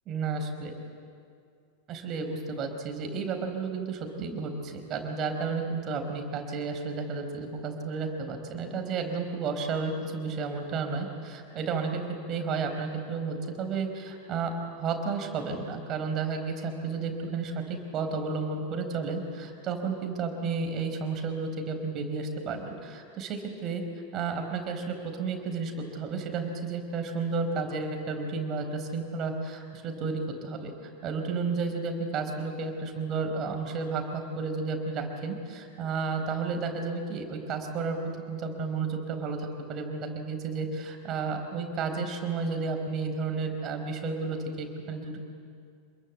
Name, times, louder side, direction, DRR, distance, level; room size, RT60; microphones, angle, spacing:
voice 1, 0.1-0.7 1.9-14.5 14.8-23.8 24.1-38.0 38.3-45.2, right 4 dB, 40° right, 5 dB, 4.7 m, -32 dB
27.0 x 22.5 x 8.5 m, 2.3 s
figure-of-eight pair, 85°, 0 cm